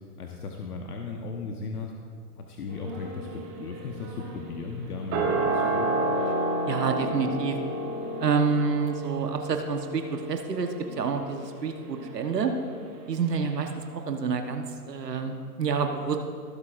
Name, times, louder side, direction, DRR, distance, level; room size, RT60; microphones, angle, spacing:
voice 1, 0.2-1.9 2.4-6.0, left 4 dB, 65° left, 2 dB, 1.2 m, -36 dB
sound 1, 2.7-13.1 13.3-13.4, right 2 dB, 20° right, 1.1 m, -31 dB
voice 2, 6.7-7.6 8.2-12.5 13.1-16.2, right 5 dB, 80° right, 5 dB, 1.2 m, -28 dB
18.0 x 8.1 x 2.5 m, 2.1 s
hypercardioid pair, 145°, 48 cm